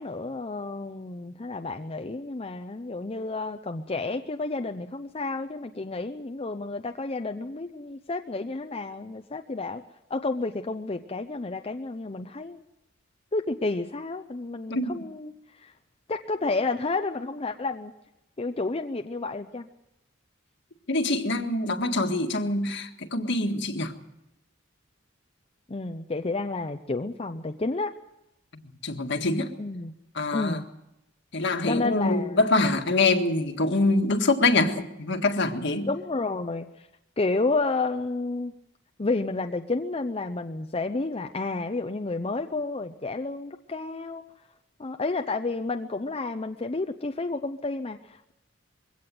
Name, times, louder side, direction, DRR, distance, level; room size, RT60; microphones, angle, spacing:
voice 1, 0.0-9.8 10.1-12.6 13.3-15.7 16.1-17.9 18.4-19.7 25.7-27.9 29.6-29.9 30.3-30.6 31.7-32.4 35.8-36.9 37.2-38.5 39.0-44.2 44.8-48.3, left 3 dB, 30° left, 0.6 m, -31 dB
voice 2, 14.7-15.1 20.9-23.9 28.5-29.5 30.1-30.6 31.3-35.9, left 2 dB, 60° left, 1.7 m, -25 dB
22.0 x 16.5 x 7.7 m
head